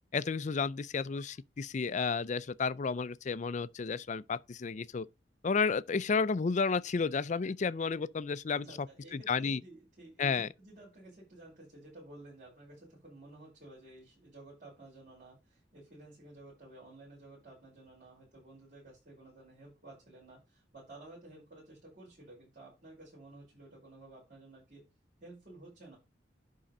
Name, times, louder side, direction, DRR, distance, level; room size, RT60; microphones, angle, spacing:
voice 1, 0.1-5.1 5.4-8.9 9.1-9.6 10.2-10.5, left 5 dB, 40° left, 0.4 m, -32 dB
voice 2, 8.5-24.8 25.2-26.0, right 2 dB, 50° right, 5.1 m, -53 dB
10.0 x 3.8 x 5.2 m
head